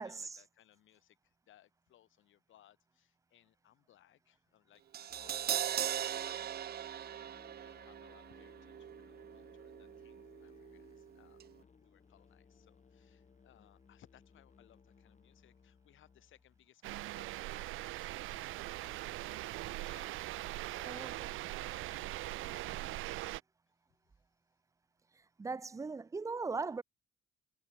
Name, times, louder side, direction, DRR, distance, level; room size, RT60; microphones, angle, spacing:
voice 1, 0.0-18.5 18.8-23.0, left 12 dB, 80° left, 7.8 m, -65 dB
Crash cymbal, 4.9-11.1 11.4-11.5, right 10 dB, 50° right, 0.7 m, -40 dB
Musical instrument, 5.1-16.7, left 5 dB, 35° left, 7.4 m, -62 dB
sound 1, 16.8-23.4, right 17 dB, 90° right, 0.9 m, -41 dB
voice 2, 25.4-26.8, right 4 dB, 15° right, 0.4 m, -38 dB
cardioid pair, 90°, 20 cm